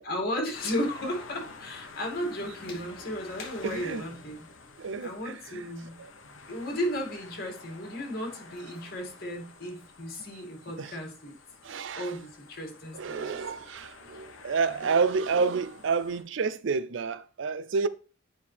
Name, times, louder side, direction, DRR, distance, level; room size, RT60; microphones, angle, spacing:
voice 1, 0.0-4.5 5.0-6.0 6.5-11.4 12.0-13.3 14.1-14.3, equal, 50° left, 2.3 m, -34 dB
sound 1, 0.5-16.2, left 3 dB, 65° left, 1.1 m, -49 dB
voice 2, 3.6-4.0 4.8-5.6 6.0-6.1 10.8-10.9 11.6-12.1 12.9-17.9, right 5 dB, 60° right, 0.5 m, -29 dB
9.5 x 5.3 x 3.4 m
head